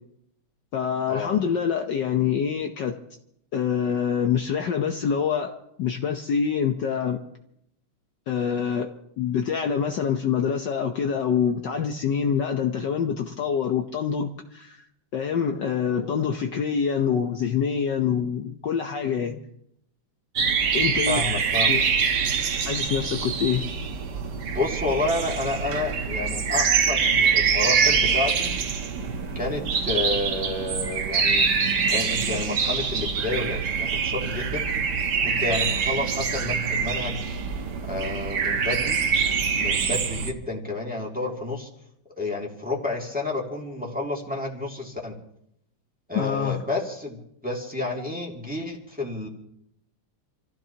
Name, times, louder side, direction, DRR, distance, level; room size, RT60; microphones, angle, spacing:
voice 1, 0.7-2.9 3.5-5.5 5.8-7.2 8.3-8.9 9.2-14.8 15.1-19.4 20.7-21.2 21.7-21.8 22.6-23.7 46.1-46.6, left 7 dB, 60° left, 4 dB, 1.4 m, -25 dB
sound 1, 20.4-40.3, right 6 dB, 55° right, 1.6 m, -25 dB
voice 2, 21.1-21.8 24.5-28.5 29.3-31.5 31.9-34.7 35.2-37.2 37.9-39.0 39.5-41.7 42.2-45.1 46.1-49.3, left 2 dB, 5° right, -2 dB, 2.3 m, -30 dB
28.0 x 15.0 x 2.9 m, 0.75 s
omnidirectional pair, 2.4 m